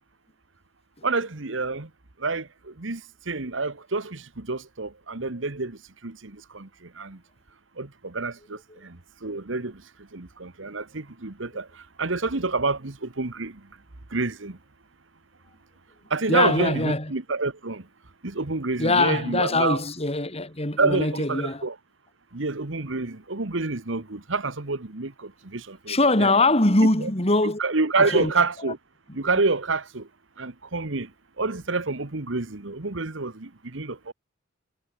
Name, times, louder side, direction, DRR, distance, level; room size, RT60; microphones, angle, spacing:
voice 1, 1.0-1.9 2.2-7.2 7.8-9.8 10.1-13.6 14.1-14.6 16.1-17.9 18.2-19.8 20.8-21.7 22.3-26.3 27.0-27.1 27.6-28.8 29.1-30.1 30.4-31.1 31.4-34.1, right 3 dB, 65° right, 1.5 m, -28 dB
voice 2, 16.3-17.1 18.8-21.7 25.9-27.6 28.0-28.3, left 2 dB, 30° left, 3.3 m, -22 dB
head